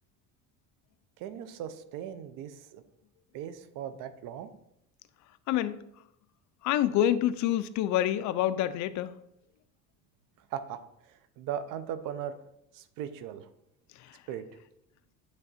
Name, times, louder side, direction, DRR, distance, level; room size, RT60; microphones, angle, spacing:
voice 1, 1.2-2.8 3.3-4.5 10.5-10.8 11.4-12.4 12.7-13.5 14.3-14.5, right 9 dB, 75° right, 0.7 m, -38 dB
voice 2, 6.6-9.2 14.0-14.2, left 12 dB, 60° left, 0.4 m, -27 dB
8.2 x 3.5 x 4.1 m
cardioid pair, 135°, 33 cm